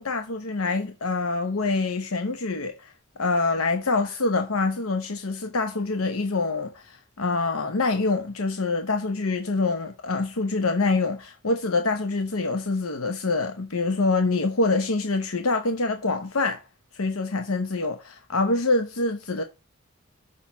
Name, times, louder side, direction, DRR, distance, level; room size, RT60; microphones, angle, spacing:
voice 1, 0.0-2.9 3.2-16.6 16.9-19.4, left 3 dB, 85° left, 0.9 m, -25 dB
6.4 x 5.7 x 5.8 m
head